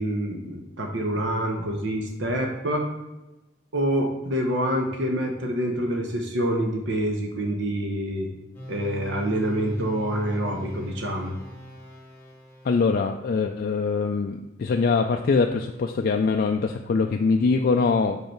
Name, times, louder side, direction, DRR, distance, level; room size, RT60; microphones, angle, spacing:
voice 1, 0.0-2.9 3.7-8.3 8.7-11.4, equal, 60° right, 2 dB, 0.9 m, -26 dB
sound 1, 8.5-13.0, equal, 10° left, 1.3 m, -40 dB
voice 2, 12.6-18.2, left 4 dB, 45° left, 3 dB, 0.3 m, -23 dB
5.4 x 4.8 x 4.4 m, 1.0 s
head